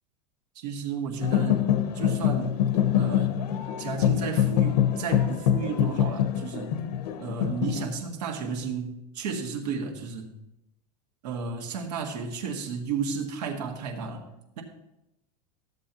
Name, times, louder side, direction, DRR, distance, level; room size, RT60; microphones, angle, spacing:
voice 1, 0.5-1.6 1.9-2.6 2.9-3.3 3.8-6.8 7.2-10.3 11.2-14.3 14.6-14.7, right 5 dB, 85° right, 2 dB, 1.8 m, -33 dB
sound 1, 1.2-7.9, left 10 dB, 85° left, 0.8 m, -25 dB
13.5 x 7.6 x 2.9 m, 0.89 s
supercardioid pair, 175°, 20 cm